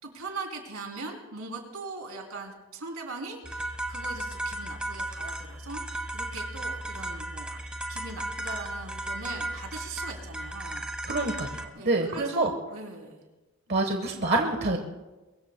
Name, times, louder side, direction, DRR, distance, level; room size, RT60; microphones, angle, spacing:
voice 1, 0.0-7.6 7.9-10.9 11.7-13.2, right 3 dB, 85° right, 1 dB, 3.3 m, -40 dB
sound 1, 3.4-11.7, right 1 dB, 5° right, 0.9 m, -35 dB
voice 2, 11.0-12.5 13.7-14.8, right 2 dB, 50° right, 3 dB, 1.2 m, -27 dB
23.5 x 21.0 x 2.2 m, 1.1 s
head